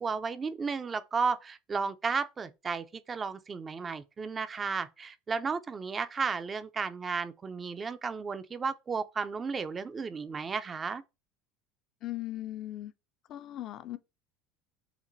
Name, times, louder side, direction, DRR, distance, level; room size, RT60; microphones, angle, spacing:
voice 1, 0.0-11.0, right 5 dB, 30° right, 0.4 m, -33 dB
voice 2, 12.0-12.9 13.3-14.0, left 14 dB, 55° left, 0.4 m, -38 dB
5.7 x 2.1 x 2.6 m
hypercardioid pair, 85°, 0 cm